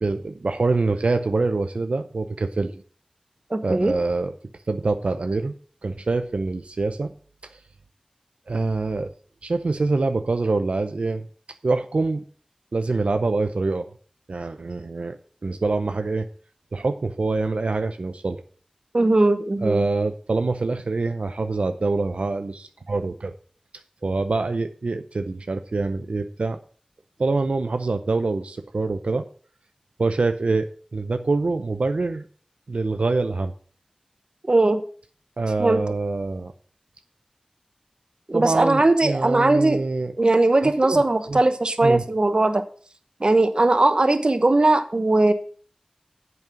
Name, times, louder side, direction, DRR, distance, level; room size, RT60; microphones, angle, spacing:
voice 1, 0.0-2.8 3.6-4.3 4.7-5.5 5.8-7.1 8.5-9.1 9.4-11.2 11.6-12.2 12.7-13.9 14.3-15.2 15.4-16.3 16.7-18.4 19.6-23.3 24.0-26.6 27.2-29.3 30.0-32.2 32.7-33.5 35.4-36.5 38.3-40.1 40.6-41.0 41.3-41.4 41.8-42.0, right 3 dB, 85° right, 7 dB, 0.6 m, -25 dB
voice 2, 3.5-3.9 18.9-19.8 34.5-34.8 35.6-35.8 38.3-39.8 40.2-42.6 43.2-45.3, right 2 dB, 50° right, 9 dB, 1.0 m, -19 dB
8.1 x 5.4 x 7.4 m, 0.44 s
wide cardioid pair, 50°, 2 cm